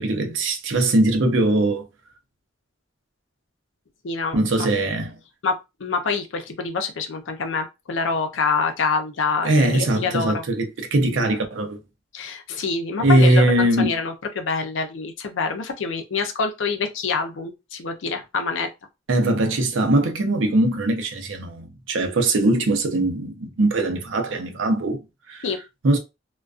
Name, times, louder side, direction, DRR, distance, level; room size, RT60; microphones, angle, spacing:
voice 1, 0.0-1.8 4.3-5.1 9.4-11.8 13.0-14.0 19.1-25.0 25.3-25.5 25.8-26.0, right 1 dB, 80° right, 0.6 m, -21 dB
voice 2, 4.0-4.7 5.4-10.4 12.1-18.7 25.4-25.6, left 4 dB, 75° left, 0.5 m, -26 dB
2.3 x 2.2 x 2.4 m
head